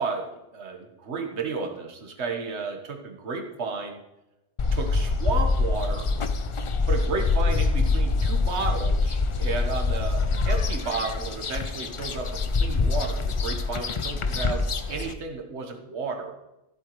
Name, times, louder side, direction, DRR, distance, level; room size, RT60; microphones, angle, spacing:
voice 1, 0.0-4.0 4.7-6.1 6.9-14.6 14.9-16.3, right 4 dB, 80° right, 4 dB, 1.6 m, -32 dB
sound 1, 4.6-15.1, left 3 dB, 40° left, 0.4 m, -25 dB
14.0 x 8.1 x 3.1 m, 0.93 s
omnidirectional pair, 1.1 m